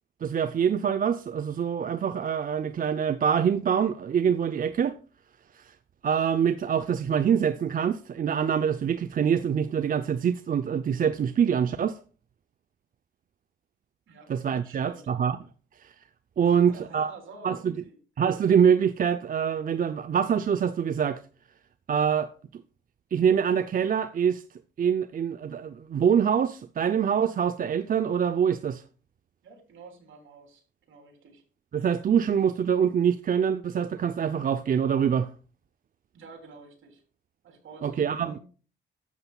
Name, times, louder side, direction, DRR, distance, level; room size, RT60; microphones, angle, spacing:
voice 1, 0.2-5.0 5.5-5.7 6.0-12.0 14.3-15.4 15.8-15.9 16.4-17.1 17.4-17.7 18.2-21.2 21.9-22.6 23.1-24.4 24.8-28.8 31.7-35.3 37.8-38.4, right 7 dB, 45° right, 0.5 m, -25 dB
voice 2, 14.6-15.0 16.4-17.9 29.4-31.4 36.1-37.0 37.4-38.4, right 4 dB, 70° right, 3.1 m, -49 dB
12.5 x 8.1 x 2.3 m
cardioid pair, 85°, 21 cm